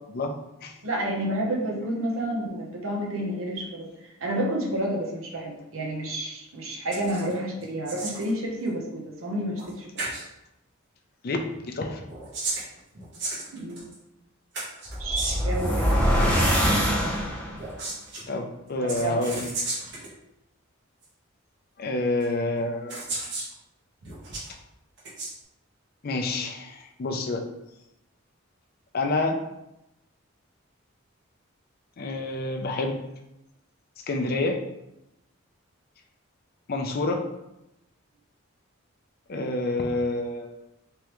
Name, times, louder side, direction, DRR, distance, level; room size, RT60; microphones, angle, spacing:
voice 1, 0.8-3.9 4.2-10.1 13.5-13.8 15.0-16.1 18.8-19.2, right 1 dB, 80° right, -1 dB, 0.9 m, -30 dB
sound 1, 6.9-7.3 7.6-8.3 9.6-9.7 10.0-10.2 12.0-13.9 14.5-15.6 17.5-18.2 18.9-20.1 21.0-21.1 22.2-22.3 22.9-23.5 24.0-24.5 25.0-25.3, right 2 dB, 55° right, 1.1 m, -34 dB
voice 2, 11.2-12.0 18.3-19.5 21.8-23.0 26.0-27.4 28.9-29.4 32.0-33.0 34.1-34.6 36.7-37.2 39.3-40.5, left 2 dB, 45° left, 4 dB, 0.5 m, -28 dB
sound 2, 14.9-17.7, equal, 5° left, 0.7 m, -23 dB
3.5 x 3.2 x 3.0 m, 0.88 s
head